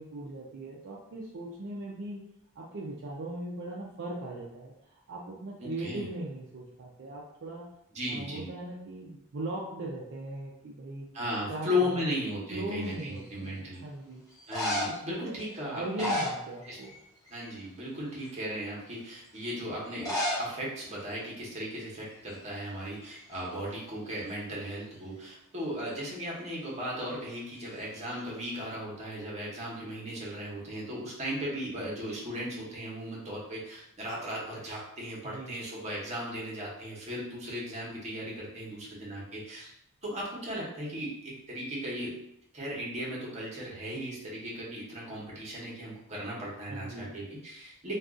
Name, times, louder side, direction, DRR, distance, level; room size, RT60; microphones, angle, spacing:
voice 1, 0.0-2.2 2.6-7.7 8.1-11.1 11.5-12.0 12.5-14.2 14.8-17.0 35.2-35.6 46.7-47.1, right 2 dB, 55° right, -4 dB, 0.4 m, -39 dB
voice 2, 5.6-6.0 7.9-8.5 11.1-13.8 14.5-16.1 16.7-16.8 17.3-39.7 40.0-42.2 42.5-48.0, equal, 30° right, -4 dB, 1.0 m, -36 dB
sound 1, 12.9-13.4 14.3-15.1 15.8-17.0 17.3-17.6 18.2-18.3 19.9-20.5 20.8-20.9 21.1-21.2 21.9-22.1 22.4-23.6 27.6-28.2, left 1 dB, 15° left, 0.8 m, -34 dB
2.5 x 2.3 x 3.6 m, 0.81 s
head